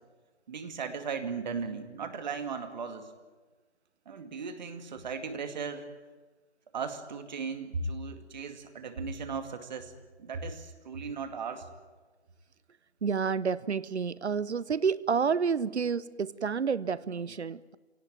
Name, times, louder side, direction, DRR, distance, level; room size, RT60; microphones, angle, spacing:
voice 1, 0.5-3.1 4.1-5.9 6.7-9.9 10.2-11.7, right 5 dB, 40° right, 8 dB, 2.3 m, -37 dB
voice 2, 13.0-17.8, right 6 dB, 75° right, 19 dB, 0.8 m, -29 dB
24.0 x 18.0 x 9.3 m, 1.3 s
figure-of-eight pair, 150°, 34 cm